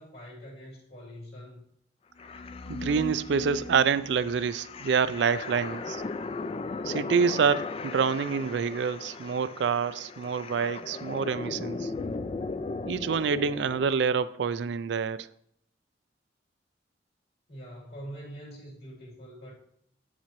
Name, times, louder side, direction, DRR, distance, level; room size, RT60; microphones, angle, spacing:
voice 1, 0.0-1.6 17.5-19.5, equal, 60° left, 2.9 m, -44 dB
sound 1, 2.2-13.9, left 3 dB, 30° left, 0.3 m, -37 dB
voice 2, 2.7-6.0 6.8-11.9 12.8-15.3, right 6 dB, 70° right, 0.4 m, -27 dB
8.2 x 7.4 x 3.0 m
head